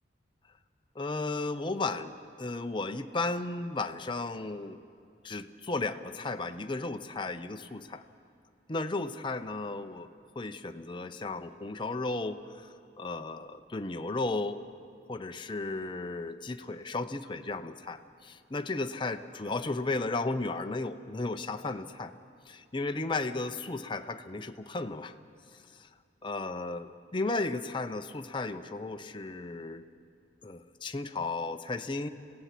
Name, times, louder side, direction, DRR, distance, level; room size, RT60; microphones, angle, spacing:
voice 1, 1.0-4.8 5.2-8.0 8.7-10.1 10.4-12.7 13.0-14.6 15.1-22.1 22.5-25.1 25.7-25.9 26.2-29.9 30.4-32.1, left 3 dB, 25° left, 7 dB, 0.6 m, -34 dB
27.0 x 16.5 x 5.9 m, 2.3 s
head